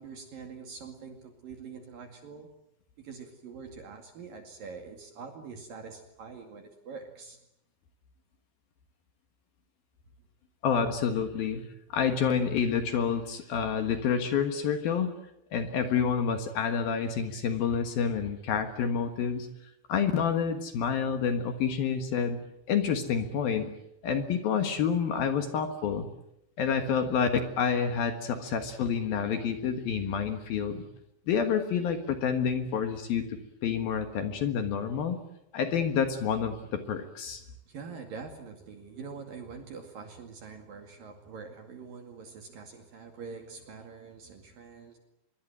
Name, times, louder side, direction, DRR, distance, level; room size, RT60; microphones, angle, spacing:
voice 1, 0.0-2.5 3.0-7.4 37.3-45.0, right 5 dB, 55° right, 5 dB, 3.7 m, -45 dB
voice 2, 10.6-11.6 11.9-15.1 15.5-19.5 19.9-22.4 22.7-23.7 24.0-26.1 26.6-30.8 31.3-35.2 35.5-37.4, left 7 dB, 60° left, 8 dB, 3.1 m, -28 dB
25.5 x 22.5 x 9.1 m, 0.82 s
omnidirectional pair, 5.2 m